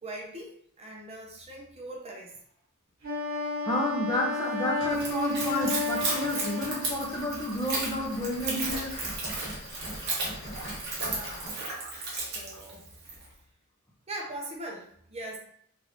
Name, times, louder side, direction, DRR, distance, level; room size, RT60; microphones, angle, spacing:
voice 1, 0.0-2.3 11.0-11.5 12.1-12.9 14.1-15.4, right 1 dB, 30° right, -1 dB, 0.6 m, -41 dB
Wind instrument woodwind instrument, 3.0-7.3, left 3 dB, 70° right, 1.4 m, -32 dB
voice 2, 3.6-8.9, left 1 dB, 15° left, -2 dB, 0.6 m, -31 dB
sound 1, 4.8-11.5, equal, 60° left, 0.9 m, -44 dB
Splash splatter / Trickle dribble, 4.9-13.3, right 3 dB, 50° right, 0.9 m, -34 dB
3.4 x 2.5 x 3.1 m, 0.64 s
head